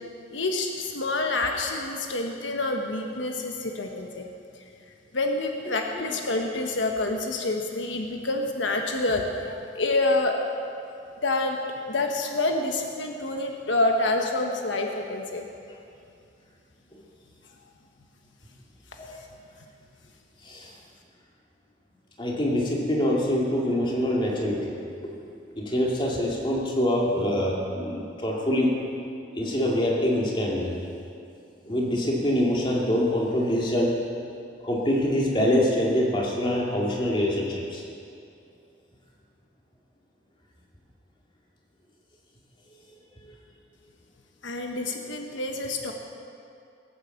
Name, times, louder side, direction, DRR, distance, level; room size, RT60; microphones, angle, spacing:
voice 1, 0.3-4.3 5.1-10.4 11.2-15.5 44.4-45.9, left 2 dB, 90° left, 3 dB, 1.3 m, -27 dB
voice 2, 5.7-6.1 16.9-17.0 19.0-19.2 20.4-20.7 22.2-24.7 25.0-25.1 25.6-28.8 29.3-30.7 31.6-34.0 34.6-37.8, left 1 dB, 25° left, -3 dB, 2.3 m, -25 dB
18.5 x 8.3 x 7.2 m, 2.5 s
head